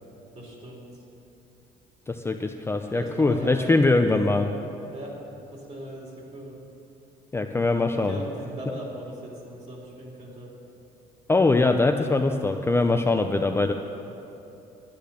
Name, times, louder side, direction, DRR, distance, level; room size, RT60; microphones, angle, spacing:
voice 1, 0.3-0.9 2.9-3.9 4.9-5.2 5.5-6.5 7.9-10.5, right 1 dB, 40° right, -2 dB, 3.0 m, -38 dB
voice 2, 2.1-4.5 7.3-8.2 11.3-13.7, left 3 dB, 15° left, 4 dB, 0.5 m, -22 dB
10.5 x 10.0 x 6.8 m, 2.8 s
cardioid pair, 110°, 17 cm